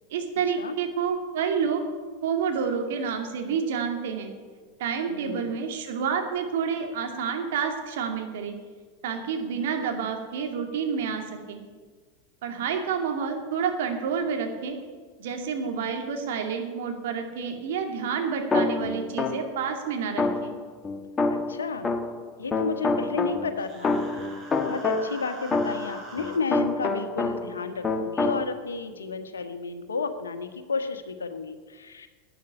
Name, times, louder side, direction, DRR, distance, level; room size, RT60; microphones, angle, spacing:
voice 1, 0.1-1.8 2.2-4.3 4.8-8.5 9.0-11.6 12.4-14.8 15.2-20.5, right 6 dB, 60° right, 3 dB, 2.4 m, -29 dB
voice 2, 5.1-5.6 21.3-21.9 22.4-24.0 24.6-32.1, left 4 dB, 75° left, 8 dB, 1.4 m, -32 dB
sound 1, 18.5-19.6 20.2-22.3 22.5-27.6 27.8-28.4, left 3 dB, 20° left, 1.2 m, -27 dB
Human voice, 23.6-26.4, right 2 dB, 30° right, 4.7 m, -43 dB
12.0 x 9.3 x 9.9 m, 1.5 s
figure-of-eight pair, 85°, 0 cm